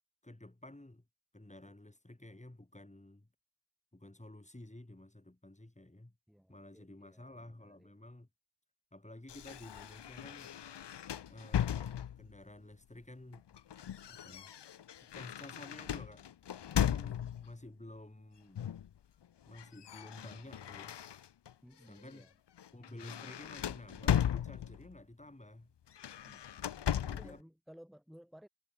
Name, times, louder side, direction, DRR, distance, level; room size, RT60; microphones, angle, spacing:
voice 1, 0.2-1.1 1.3-3.3 3.9-6.2 6.5-8.3 8.9-10.6 11.3-13.5 14.1-14.5 15.1-16.3 16.7-18.7 19.5-21.0 21.9-22.3 22.7-25.7 27.1-27.4, left 1 dB, 15° left, 3.4 m, -52 dB
voice 2, 6.3-7.9 21.6-22.3 26.2-28.5, equal, ahead, 1.3 m, -58 dB
sound 1, 9.3-12.4 13.3-17.5 18.6-18.9 19.2-21.5 22.0-22.2 22.6-25.0 25.9-27.4, left 10 dB, 70° left, 0.7 m, -37 dB
wide cardioid pair, 85°, 43 cm